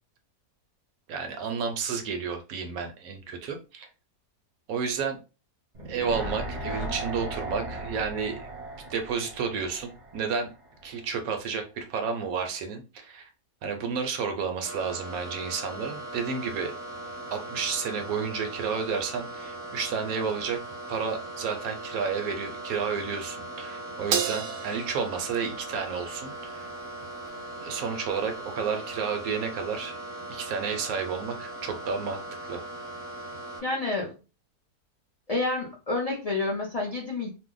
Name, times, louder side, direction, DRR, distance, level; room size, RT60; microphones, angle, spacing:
voice 1, 1.1-3.9 4.7-5.2 5.9-8.5 8.9-10.5 10.8-13.3 13.6-16.7 17.3-20.6 20.9-26.7 27.6-29.9 30.3-32.2 32.5-32.6, right 6 dB, 70° right, 5 dB, 1.0 m, -31 dB
sound 1, 5.7-10.9 11.2-11.3, right 1 dB, 45° right, 0.6 m, -37 dB
sound 2, 14.6-33.6, right 2 dB, 5° right, 0.7 m, -39 dB
Crash cymbal, 24.1-26.6, right 7 dB, 85° right, 1.2 m, -33 dB
voice 2, 33.6-34.2 35.3-37.3, left 3 dB, 60° left, -2 dB, 0.4 m, -29 dB
2.7 x 2.0 x 3.7 m, 0.31 s
omnidirectional pair, 1.7 m